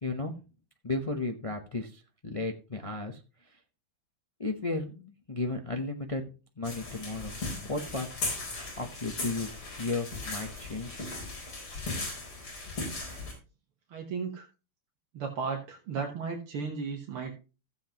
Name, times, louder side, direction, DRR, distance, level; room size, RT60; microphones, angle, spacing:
voice 1, 0.0-0.3 0.8-3.6 4.4-6.2 6.6-7.4 7.6-8.1 8.5-11.4, left 3 dB, 60° left, 4 dB, 0.3 m, -34 dB
sound 1, 6.6-13.3, left 3 dB, 80° left, 4.8 m, -37 dB
voice 2, 13.9-14.5 15.1-17.4, right 5 dB, 85° right, 1 dB, 2.2 m, -35 dB
14.5 x 7.7 x 3.0 m, 0.32 s
omnidirectional pair, 2.3 m